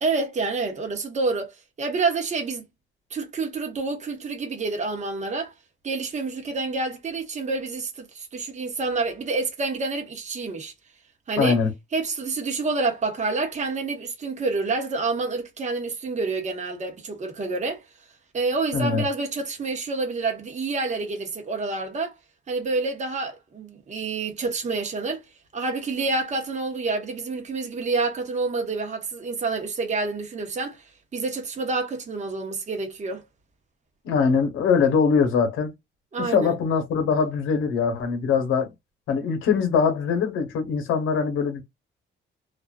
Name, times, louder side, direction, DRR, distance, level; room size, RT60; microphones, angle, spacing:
voice 1, 0.0-1.5 1.8-2.6 3.1-5.5 5.8-10.7 11.3-11.6 11.9-17.8 18.3-22.1 22.5-25.2 25.5-30.8 31.1-33.2 36.1-36.5, right 3 dB, 35° right, 0.9 m, -28 dB
voice 2, 11.4-11.7 18.7-19.0 34.0-35.7 36.2-38.7 39.1-41.6, left 5 dB, 90° left, 0.9 m, -22 dB
2.4 x 2.2 x 2.2 m
cardioid pair, 90°, 20 cm